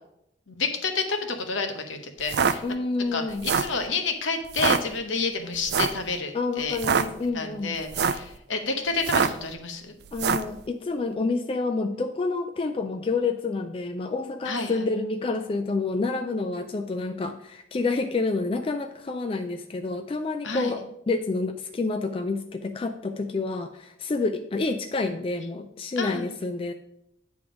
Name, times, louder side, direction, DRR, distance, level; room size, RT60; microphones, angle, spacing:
voice 1, 0.5-2.6 3.1-7.1 7.3-9.9 14.4-14.9 20.4-20.7 26.0-26.3, left 4 dB, 80° left, 5 dB, 0.9 m, -29 dB
sound 1, 2.2-2.6 3.3-3.8 4.5-4.8 5.7-6.0 6.7-7.1 7.8-8.3 9.0-9.4 10.1-10.5, right 6 dB, 55° right, 0.3 m, -23 dB
voice 2, 2.6-3.5 6.3-7.8 10.1-26.7, left 3 dB, 30° left, 6 dB, 0.3 m, -28 dB
8.6 x 3.6 x 4.9 m, 0.79 s
head